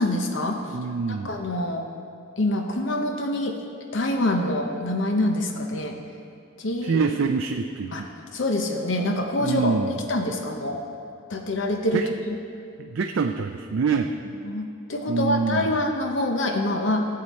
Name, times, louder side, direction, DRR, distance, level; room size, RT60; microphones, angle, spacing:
voice 1, 0.0-0.8 1.2-1.9 2.4-3.6 3.9-6.0 6.6-7.0 7.9-9.8 10.1-10.8 11.3-12.3 14.4-17.1, left 1 dB, 70° left, 4 dB, 0.8 m, -26 dB
voice 2, 0.7-1.3 6.8-8.1 9.4-10.0 11.9-12.1 12.8-14.1 15.1-15.8, right 5 dB, 75° right, 5 dB, 0.4 m, -25 dB
14.5 x 7.6 x 4.2 m, 2.5 s
head